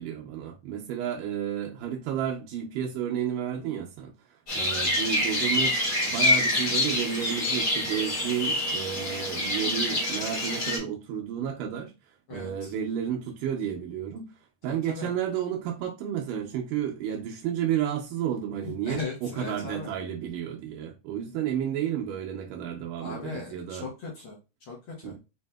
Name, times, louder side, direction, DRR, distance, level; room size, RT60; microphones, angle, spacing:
voice 1, 0.0-4.1 4.5-11.9 12.3-14.3 14.6-23.9 25.0-25.2, right 9 dB, 90° right, 2.2 m, -31 dB
sound 1, 4.5-10.8, left 1 dB, 40° left, 1.4 m, -26 dB
voice 2, 12.3-12.7 14.7-15.1 18.6-19.9 23.0-25.1, left 4 dB, 60° left, 1.4 m, -38 dB
6.0 x 2.7 x 2.2 m
omnidirectional pair, 3.6 m